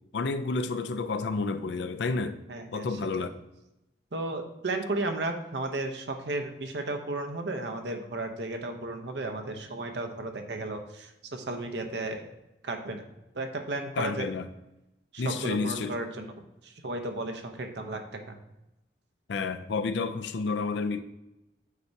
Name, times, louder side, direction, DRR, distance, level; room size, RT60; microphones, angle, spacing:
voice 1, 0.1-2.4 2.7-3.3 14.0-14.5 15.2-15.9 19.3-21.0, left 4 dB, 75° left, 10 dB, 0.4 m, -30 dB
voice 2, 2.5-3.3 4.1-12.2 12.6-13.0 13.3-14.3 15.1-16.3 16.6-18.4, right 2 dB, 70° right, 5 dB, 0.8 m, -34 dB
8.2 x 4.6 x 2.7 m, 0.92 s
head